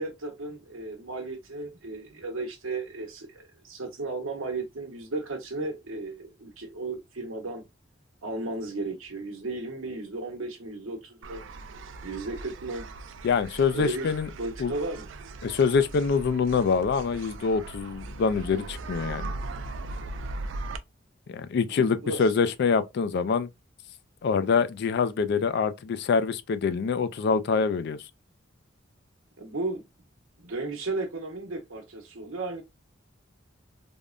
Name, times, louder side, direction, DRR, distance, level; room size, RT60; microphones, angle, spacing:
voice 1, 0.0-7.6 8.2-11.4 12.0-12.9 13.7-14.1 14.4-15.1 20.4-20.6 21.7-22.2 29.4-29.8 30.4-32.6, right 2 dB, 85° right, 1.0 m, -35 dB
sound 1, 11.2-20.8, right 2 dB, 65° right, 0.4 m, -39 dB
voice 2, 13.2-14.3 14.6-14.7 15.4-19.4 21.3-23.5 24.2-28.0, left 5 dB, 55° left, 0.3 m, -25 dB
3.5 x 2.1 x 2.4 m
head